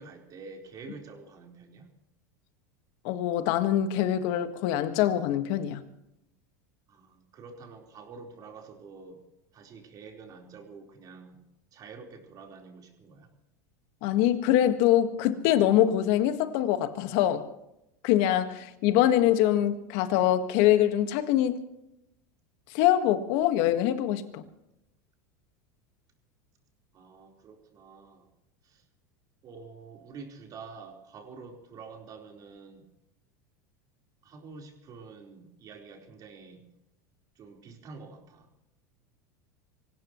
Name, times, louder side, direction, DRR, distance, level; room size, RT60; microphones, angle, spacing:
voice 1, 0.0-1.9 6.9-9.2 9.5-11.4 11.7-13.3 26.9-28.3 28.6-28.8 29.4-32.9 34.2-36.7 37.4-38.5, right 4 dB, 40° right, 4.4 m, -47 dB
voice 2, 3.0-5.8 14.0-17.4 18.0-21.6 22.7-24.4, left 12 dB, 65° left, 1.7 m, -24 dB
25.0 x 16.5 x 3.2 m
supercardioid pair, 105°, 10 cm